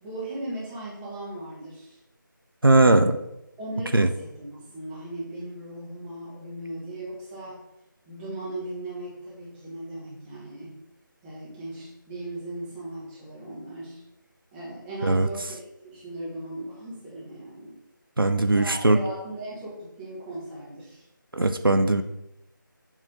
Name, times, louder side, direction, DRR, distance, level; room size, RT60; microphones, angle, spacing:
voice 1, 0.0-2.0 3.6-7.6 8.0-10.7 11.2-14.0 14.5-17.8 18.5-21.0, right 1 dB, 10° right, -8 dB, 1.3 m, -37 dB
voice 2, 2.6-3.2 3.9-4.1 15.0-15.3 18.2-19.0 21.3-22.0, right 2 dB, 90° right, 8 dB, 0.6 m, -19 dB
7.4 x 3.3 x 4.9 m, 0.87 s
figure-of-eight pair, 160°, 11 cm